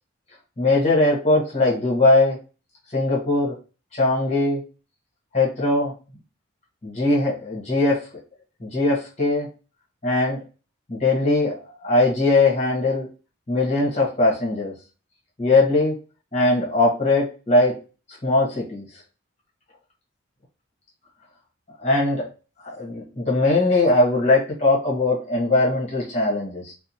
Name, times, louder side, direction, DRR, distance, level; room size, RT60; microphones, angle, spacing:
voice 1, 0.6-2.4 2.9-3.5 3.9-4.6 5.3-5.9 6.8-8.0 8.6-9.5 10.0-10.4 10.9-13.1 13.5-14.7 15.4-15.9 16.3-17.7 18.2-18.8 21.8-22.3 22.6-26.7, left 2 dB, 35° left, -4 dB, 1.0 m, -20 dB
2.7 x 2.1 x 2.7 m, 0.33 s
head